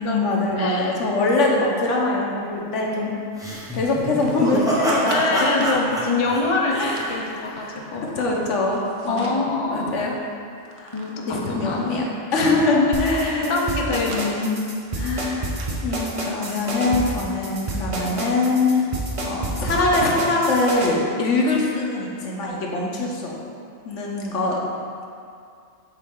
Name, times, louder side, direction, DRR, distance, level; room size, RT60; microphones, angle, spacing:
voice 1, 0.0-3.1 3.7-5.5 6.7-7.9 8.1-9.4 9.7-10.1 10.7-11.0 11.3-13.7 14.1-14.5 14.9-15.5 15.8-18.8 19.3-23.4 23.8-24.6, left 2 dB, 75° left, -2 dB, 1.2 m, -23 dB
voice 2, 0.6-1.0 5.1-8.1 9.1-9.9 10.9-12.0 12.7-14.4, left 3 dB, 40° left, 0 dB, 0.4 m, -25 dB
sound 1, 3.4-7.5, equal, 5° right, 0.8 m, -26 dB
sound 2, 3.7-5.8 6.5-7.2 7.7-9.4 9.9-10.0 10.2-12.2 12.8-16.6 17.0-17.1 17.5-21.1 21.5-21.6 22.4-22.5, right 3 dB, 80° right, 1.0 m, -43 dB
sound 3, 12.9-20.9, right 2 dB, 35° right, 0.6 m, -29 dB
7.3 x 4.1 x 3.7 m, 2.4 s
omnidirectional pair, 1.3 m